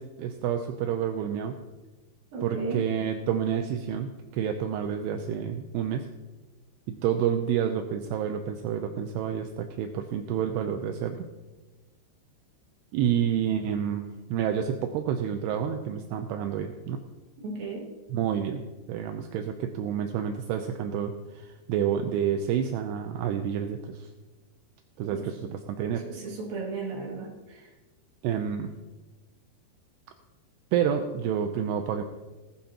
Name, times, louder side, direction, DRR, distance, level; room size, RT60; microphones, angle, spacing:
voice 1, 0.0-1.6 2.4-6.1 6.9-11.3 12.9-17.0 18.1-18.6 18.9-24.1 25.0-26.0 28.2-28.7 30.7-32.0, right 8 dB, 80° right, 6 dB, 2.7 m, -29 dB
voice 2, 2.3-2.8 17.4-17.9 25.0-25.3 26.0-27.7, right 3 dB, 60° right, -1 dB, 3.8 m, -35 dB
19.0 x 11.5 x 2.9 m, 1.2 s
omnidirectional pair, 4.9 m